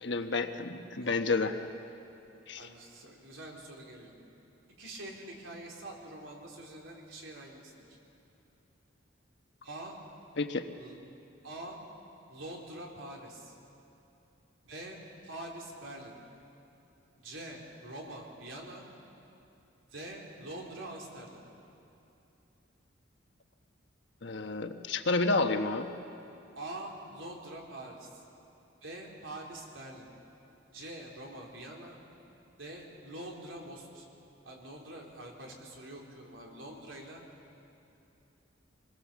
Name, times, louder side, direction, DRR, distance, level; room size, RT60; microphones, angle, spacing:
voice 1, 0.0-1.6 2.5-2.7 10.4-10.7 24.2-25.9, left 3 dB, 65° left, 6 dB, 1.2 m, -30 dB
voice 2, 2.5-4.1 4.8-8.0 9.6-10.0 10.8-11.0 11.4-11.8 12.3-13.6 14.6-16.2 17.2-18.9 19.9-21.4 26.5-28.2 28.8-30.1 30.7-32.0 32.6-34.1 34.4-37.2, right 1 dB, 85° right, -1 dB, 3.9 m, -45 dB
25.5 x 20.5 x 7.4 m, 2.8 s
head